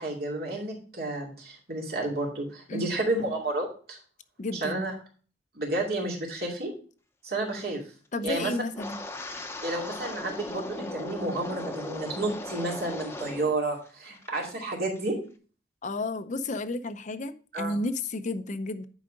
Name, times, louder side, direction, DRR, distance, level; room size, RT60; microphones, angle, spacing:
voice 1, 0.0-4.0 4.6-4.9 5.5-6.7 7.2-7.8 8.2-8.5 9.6-15.2 17.5-17.8, right 2 dB, 60° right, 2.6 m, -31 dB
voice 2, 4.4-4.8 8.1-9.0 15.8-18.9, left 2 dB, 45° left, 0.6 m, -32 dB
Wind, 8.7-13.6 13.9-14.3 14.7-15.0, left 2 dB, 15° left, 0.8 m, -38 dB
10.0 x 5.0 x 3.7 m
head